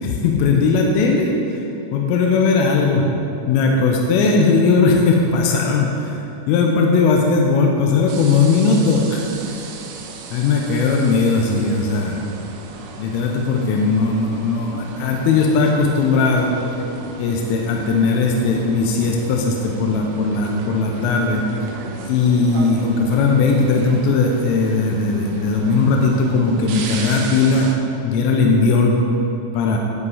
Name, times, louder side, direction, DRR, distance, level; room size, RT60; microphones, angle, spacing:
voice 1, 0.0-1.6 1.9-3.1 3.5-9.4 10.3-12.2 13.0-16.5 17.2-21.4 22.1-27.7 28.0-29.0 29.5-29.8, left 4 dB, 85° left, 0 dB, 3.2 m, -18 dB
sound 1, 8.1-27.8, right 5 dB, 85° right, 2.6 m, -35 dB
12.0 x 5.5 x 4.1 m, 2.8 s
omnidirectional pair, 5.8 m